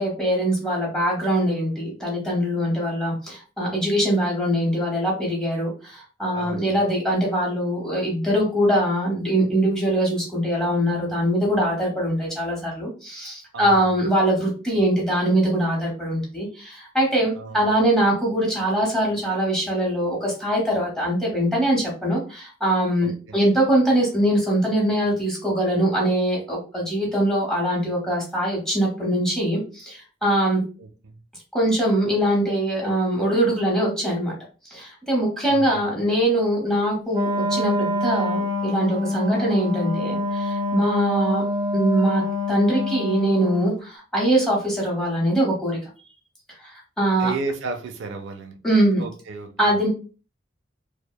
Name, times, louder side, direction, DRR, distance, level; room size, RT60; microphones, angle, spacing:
voice 1, 0.0-30.6 31.5-34.4 34.7-41.4 41.7-42.2 42.5-45.8 46.6-47.3 48.6-49.0 49.6-49.9, right 1 dB, 5° left, 0.9 m, -22 dB
voice 2, 6.3-6.8 13.5-14.0 17.4-17.8 23.0-23.6 30.8-31.2 35.5-36.0 47.2-48.6 49.0-49.8, right 3 dB, 85° right, 0.4 m, -34 dB
Wind instrument woodwind instrument, 37.1-43.7, left 1 dB, 20° right, 0.4 m, -26 dB
2.8 x 2.0 x 2.2 m
head